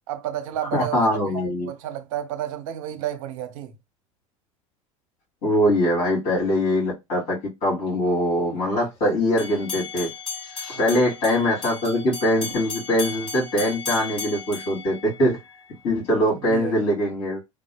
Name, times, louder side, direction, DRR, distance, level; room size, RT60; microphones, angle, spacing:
voice 1, 0.1-3.7 10.7-10.9 16.5-16.8, right 11 dB, 65° right, 0.7 m, -31 dB
voice 2, 0.7-1.7 5.4-7.4 7.6-10.1 10.5-15.4 15.8-17.4, equal, 65° left, 2.2 m, -22 dB
sound 1, 9.4-15.6, left 5 dB, 30° left, 1.5 m, -35 dB
3.5 x 2.1 x 2.7 m
hypercardioid pair, 75°, 18 cm